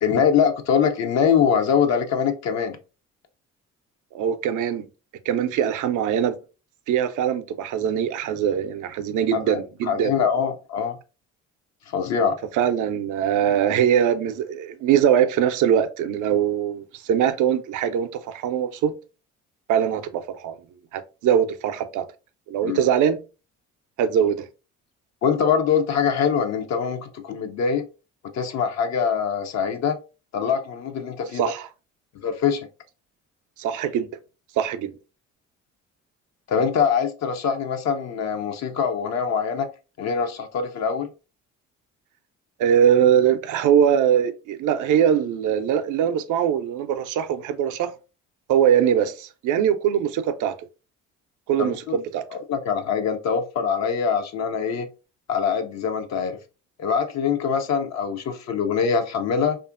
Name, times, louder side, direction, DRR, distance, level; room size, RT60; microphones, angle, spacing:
voice 1, 0.0-2.8 9.3-11.0 11.9-12.4 22.6-22.8 25.2-27.9 28.3-30.0 30.3-31.4 32.2-32.7 36.5-39.7 40.0-41.1 51.6-52.0 52.3-54.9 55.3-56.4 56.8-59.6, left 7 dB, 55° left, 0.5 m, -23 dB
voice 2, 4.1-4.8 5.3-6.3 6.9-10.1 12.5-18.9 19.7-20.6 20.9-22.0 22.5-23.2 24.0-24.4 31.3-31.7 33.6-34.1 34.6-34.9 42.6-47.9 48.5-50.5 51.5-52.2, right 9 dB, 70° right, 0.5 m, -22 dB
2.7 x 2.4 x 2.4 m
supercardioid pair, 65°, 32 cm